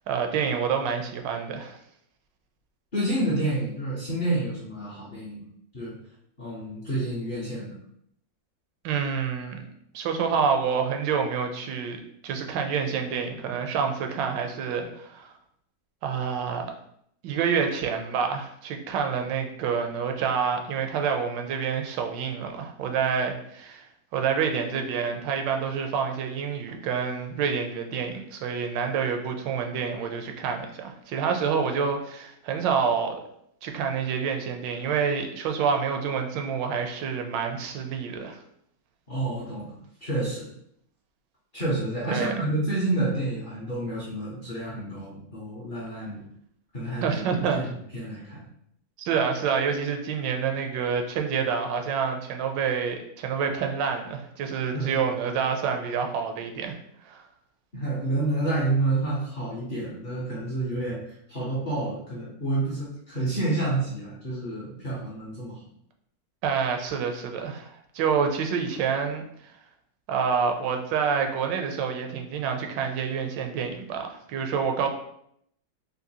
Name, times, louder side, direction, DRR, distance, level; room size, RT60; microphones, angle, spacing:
voice 1, 0.1-1.8 8.8-9.6 9.9-15.3 16.0-16.7 17.2-23.9 24.1-33.1 33.6-38.4 42.1-42.3 47.0-47.6 49.0-56.7 57.1-57.3 66.4-69.2 70.1-74.9, right 6 dB, 85° right, 4 dB, 1.2 m, -27 dB
voice 2, 2.9-5.4 5.7-5.9 6.4-7.8 39.1-40.5 41.5-46.2 46.7-47.2 47.5-47.7 47.9-48.4 54.7-54.9 57.7-65.6, right 2 dB, 50° left, -7 dB, 0.6 m, -29 dB
3.8 x 2.6 x 2.7 m, 0.72 s
omnidirectional pair, 1.9 m